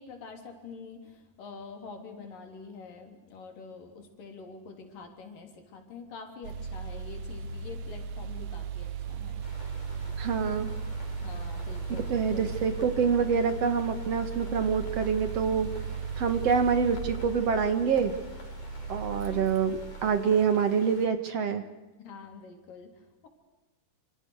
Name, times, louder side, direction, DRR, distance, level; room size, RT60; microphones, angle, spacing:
voice 1, 0.0-9.4 11.2-12.5 22.0-23.3, left 4 dB, 85° left, 4 dB, 5.2 m, -46 dB
sound 1, 6.4-20.2, right 5 dB, 80° right, 3.1 m, -36 dB
sound 2, 9.4-21.1, left 2 dB, 65° left, 6.5 m, -50 dB
voice 2, 10.2-10.7 12.1-15.7 16.2-18.1 18.9-21.7, right 6 dB, 55° right, 9 dB, 2.5 m, -26 dB
28.0 x 27.5 x 6.5 m, 1.1 s
omnidirectional pair, 3.8 m